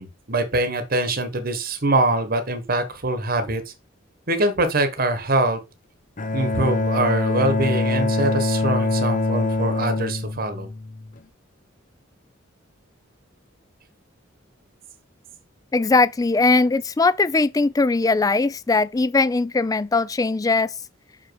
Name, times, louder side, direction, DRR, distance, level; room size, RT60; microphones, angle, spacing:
voice 1, 0.0-3.7 4.3-5.6 6.3-10.7, right 2 dB, 45° right, 1.1 m, -23 dB
Bowed string instrument, 6.2-11.2, left 2 dB, 40° left, 0.7 m, -24 dB
voice 2, 15.7-20.7, left 3 dB, 20° left, 0.3 m, -20 dB
5.7 x 5.1 x 4.6 m
head